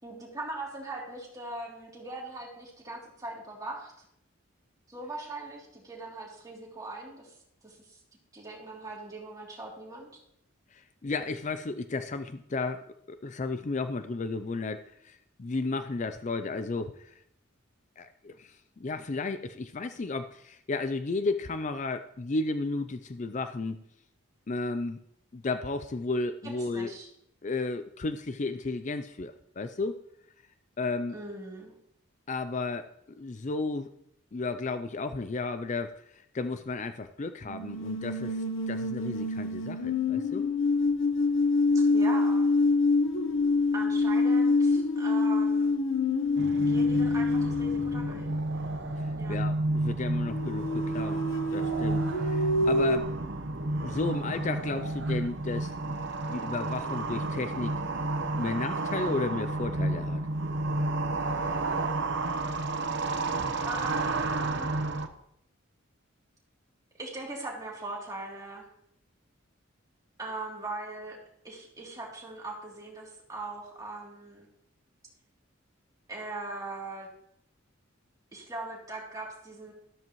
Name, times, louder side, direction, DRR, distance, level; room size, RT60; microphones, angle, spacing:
voice 1, 0.0-3.9 4.9-7.3 7.6-8.0 8.3-10.1 26.7-27.1 31.1-31.7 41.7-42.5 43.7-45.7 46.7-48.4 49.1-49.4 63.6-64.7 67.0-68.7 70.2-71.2 71.4-74.5 76.1-77.1 78.3-79.7, right 2 dB, 15° right, -3 dB, 3.0 m, -40 dB
voice 2, 10.7-17.2 18.0-23.8 24.5-25.0 25.3-26.9 27.4-30.0 30.8-31.2 32.3-33.9 34.3-40.5 49.0-51.2 51.5-53.1 53.8-55.7 56.3-57.8 58.4-60.2, left 3 dB, 35° left, 10 dB, 0.4 m, -33 dB
sound 1, 37.5-48.5 50.3-53.0, left 3 dB, 70° left, 1.1 m, -26 dB
sound 2, 46.4-65.1, right 2 dB, 55° right, 1.0 m, -31 dB
13.5 x 13.0 x 3.1 m, 0.75 s
head